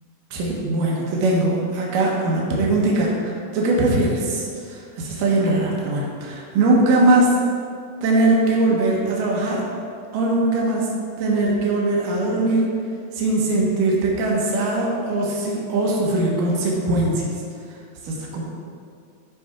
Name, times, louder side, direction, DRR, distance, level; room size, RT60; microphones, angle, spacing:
voice 1, 0.3-7.3 8.0-9.6 10.1-10.9 11.2-12.7 13.1-17.2 18.0-18.4, right 2 dB, 70° right, -3 dB, 2.8 m, -21 dB
12.5 x 5.3 x 3.7 m, 2.3 s
omnidirectional pair, 4.3 m